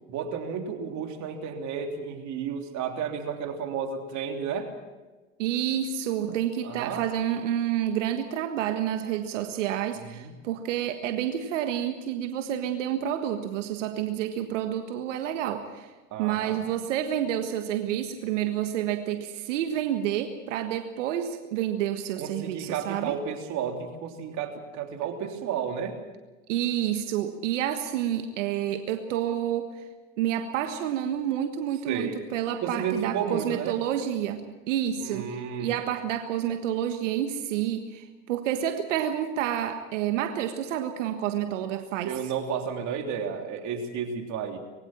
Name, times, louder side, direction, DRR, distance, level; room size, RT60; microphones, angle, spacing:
voice 1, 0.1-4.7 6.6-7.0 10.1-10.3 16.1-16.6 22.2-25.9 31.9-32.2 32.6-33.7 35.0-35.8 42.0-44.6, right 7 dB, 50° right, 4 dB, 3.3 m, -32 dB
voice 2, 5.4-15.9 16.2-23.1 26.5-29.8 30.2-42.1, right 10 dB, 75° right, 6 dB, 1.6 m, -29 dB
22.5 x 16.5 x 7.4 m, 1.2 s
hypercardioid pair, 95°, 37 cm